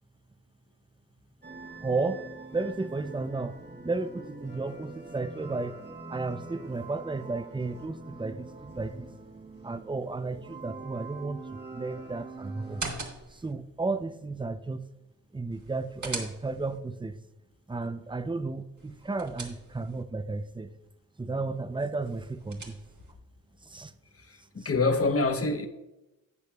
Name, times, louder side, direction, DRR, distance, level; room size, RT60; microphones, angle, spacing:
sound 1, 1.4-12.8, right 3 dB, 30° right, 1.2 m, -44 dB
voice 1, 1.8-2.2 2.5-3.6 3.8-5.8 6.1-9.1 9.6-12.8 13.3-14.8 15.3-17.2 17.7-20.7 21.2-22.8 23.6-23.9, right 3 dB, 15° right, 0.5 m, -33 dB
sound 2, 12.6-13.5 15.5-16.8 18.8-20.0 22.0-23.1, right 3 dB, 55° right, 1.6 m, -41 dB
voice 2, 24.2-25.7, left 3 dB, 40° left, 0.9 m, -26 dB
12.0 x 8.2 x 2.3 m
wide cardioid pair, 70°, 34 cm